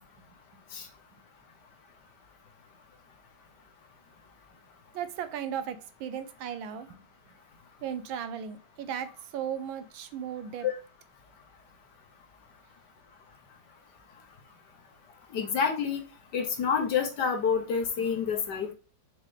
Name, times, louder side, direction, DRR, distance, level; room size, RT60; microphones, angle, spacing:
voice 1, 4.9-7.0 7.8-10.7, right 8 dB, 75° right, 10 dB, 1.4 m, -36 dB
voice 2, 15.3-16.0 16.3-18.7, left 6 dB, 60° left, 4 dB, 1.4 m, -28 dB
6.8 x 4.4 x 3.2 m, 0.35 s
omnidirectional pair, 2.3 m